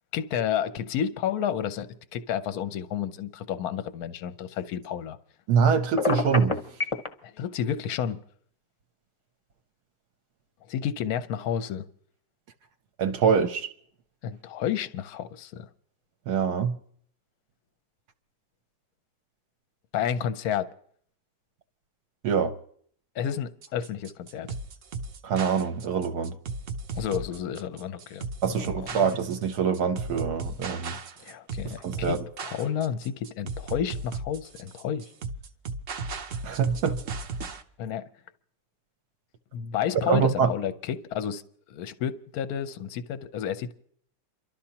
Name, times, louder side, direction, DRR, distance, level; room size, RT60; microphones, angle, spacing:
voice 1, 0.1-5.2 7.2-8.2 10.7-11.8 14.2-15.7 19.9-20.7 23.1-24.5 27.0-28.2 28.5-29.0 31.2-35.0 37.8-38.0 39.5-41.4 41.7-43.7, left 9 dB, 65° left, 0.9 m, -31 dB
voice 2, 5.5-6.5 13.0-13.7 16.3-16.7 22.2-22.5 25.2-26.3 28.4-31.0 31.8-32.2 36.4-37.0 40.1-40.5, right 6 dB, 65° right, 1.1 m, -24 dB
Telephone, 6.0-7.1, left 4 dB, 35° left, 0.5 m, -25 dB
sound 1, 23.6-37.6, right 3 dB, 85° right, 0.6 m, -36 dB
29.5 x 12.5 x 2.9 m
omnidirectional pair, 2.2 m